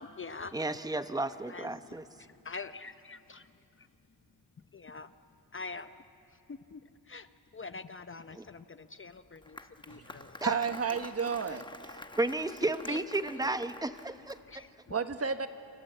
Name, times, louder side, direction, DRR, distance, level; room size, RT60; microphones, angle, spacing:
voice 1, 0.0-0.6 1.5-3.9 4.7-5.1 5.5-10.4 11.4-11.6 12.5-12.6 12.9-13.5 14.5-14.7, left 4 dB, 30° left, 10 dB, 0.8 m, -46 dB
voice 2, 0.5-2.0 8.3-8.4 10.4-10.5 12.1-14.4, right 2 dB, 10° right, 10 dB, 1.0 m, -32 dB
Applause, 9.1-14.6, left 2 dB, 10° left, 1.1 m, -49 dB
voice 3, 9.9-11.7 14.9-15.5, right 6 dB, 35° right, 8 dB, 1.4 m, -32 dB
28.0 x 26.5 x 7.9 m, 2.7 s
cardioid pair, 95°, 39 cm